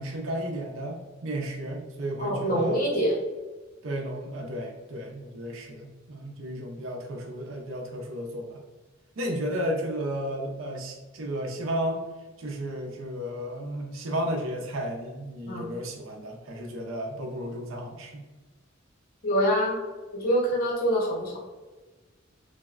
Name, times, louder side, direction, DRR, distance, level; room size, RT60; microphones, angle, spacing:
voice 1, 0.0-2.8 3.8-8.6 9.2-12.0 12.4-18.2, equal, 80° right, 2 dB, 0.5 m, -33 dB
voice 2, 2.2-3.1 15.5-15.7 19.2-19.7 20.1-21.4, equal, 45° left, -3 dB, 0.7 m, -25 dB
3.4 x 2.0 x 2.3 m, 1.2 s
head